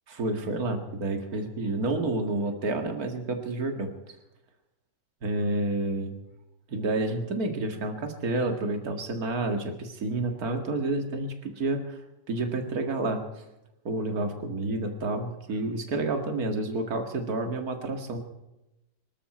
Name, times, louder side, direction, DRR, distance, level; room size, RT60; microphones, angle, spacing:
voice 1, 0.1-3.9 5.2-6.1 6.7-12.0 12.3-13.2 13.8-18.2, right 2 dB, 60° right, 5 dB, 2.5 m, -29 dB
25.0 x 13.0 x 4.4 m, 0.93 s
omnidirectional pair, 1.8 m